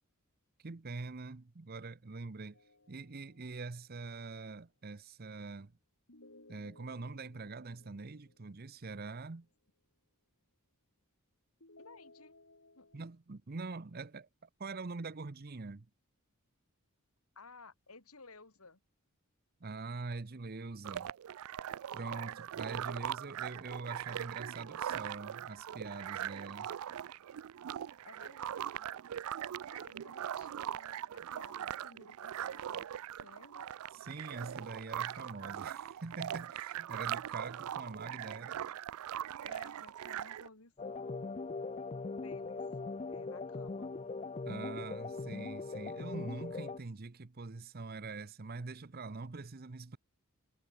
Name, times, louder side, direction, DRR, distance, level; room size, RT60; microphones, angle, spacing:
voice 1, 0.6-2.6 2.9-5.7 6.5-9.5 12.9-15.9 19.6-21.1 21.9-26.7 33.9-38.6 44.5-50.0, right 3 dB, 45° right, 0.7 m, -44 dB
sound 1, 2.5-4.1 6.1-9.2 11.6-13.0, left 2 dB, 60° left, 3.7 m, -61 dB
voice 2, 11.8-12.3 12.8-12.9 17.4-18.8 28.0-28.9 29.7-33.7 39.4-41.5 42.1-42.6 43.1-43.9, left 3 dB, 80° left, 3.6 m, -56 dB
sound 2, 20.8-40.5, right 10 dB, 75° right, 0.3 m, -41 dB
sound 3, 40.8-46.8, left 3 dB, 30° left, 0.4 m, -40 dB
head